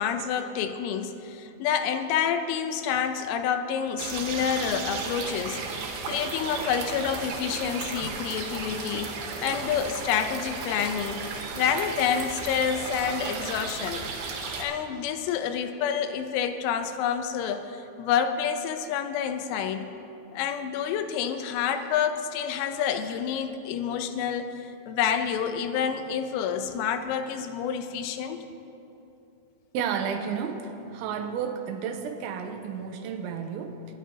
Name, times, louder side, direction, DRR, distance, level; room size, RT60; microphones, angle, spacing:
voice 1, 0.0-9.1 9.4-11.2 11.6-14.1 14.6-19.9 20.3-28.4, left 8 dB, 85° left, 7 dB, 3.2 m, -28 dB
sound 1, 4.0-14.6, right 4 dB, 65° right, 3.0 m, -34 dB
voice 2, 29.7-34.0, right 7 dB, 85° right, 5 dB, 2.9 m, -32 dB
25.0 x 10.5 x 2.8 m, 2.9 s
omnidirectional pair, 5.6 m